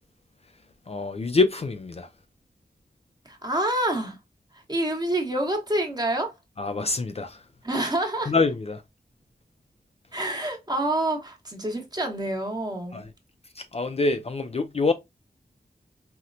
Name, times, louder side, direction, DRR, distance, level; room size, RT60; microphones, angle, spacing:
voice 1, 0.9-2.1 6.6-7.4 8.3-8.8 12.9-13.0 13.6-14.9, left 3 dB, 40° left, 0.4 m, -25 dB
voice 2, 3.2-4.2 4.5-6.3 7.6-8.3 10.1-13.0, right 1 dB, 25° right, 0.9 m, -27 dB
4.2 x 2.1 x 2.5 m
wide cardioid pair, 90°, 16 cm